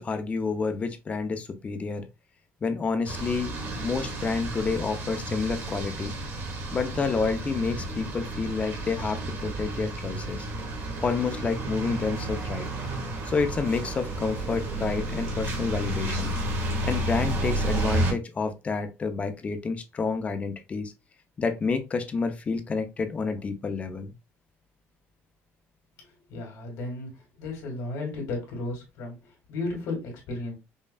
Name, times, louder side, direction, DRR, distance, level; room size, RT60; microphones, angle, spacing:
voice 1, 0.0-2.1 2.6-6.1 6.7-10.5 11.0-12.7 13.3-16.3 16.8-20.9 21.4-24.1, left 4 dB, 25° left, 0.6 m, -29 dB
sound 1, 3.0-18.1, right 2 dB, 50° right, 1.7 m, -31 dB
voice 2, 26.0-30.6, left 2 dB, 70° left, 2.0 m, -34 dB
5.3 x 2.4 x 2.2 m
cardioid pair, 135°, 5 cm